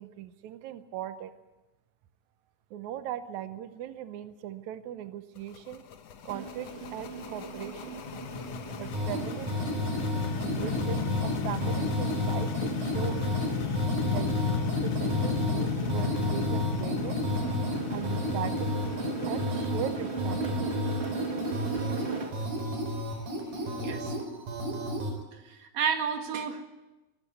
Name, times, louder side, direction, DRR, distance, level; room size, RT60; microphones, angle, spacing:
voice 1, 0.0-1.3 2.7-5.8 6.2-7.9 8.8-9.7 10.4-13.2 14.1-17.2 17.9-18.8 19.2-20.8, right 11 dB, 85° right, 10 dB, 1.6 m, -39 dB
sound 1, 5.4-24.1, left 7 dB, 65° left, 1.7 m, -34 dB
sound 2, 6.3-22.5, right 4 dB, 35° right, 1.1 m, -38 dB
sound 3, 8.9-25.1, left 1 dB, 65° right, 5.6 m, -32 dB
voice 2, 23.7-24.1 25.4-26.6, right 6 dB, 50° right, 5 dB, 2.6 m, -31 dB
21.0 x 13.0 x 9.7 m, 1.1 s
omnidirectional pair, 4.5 m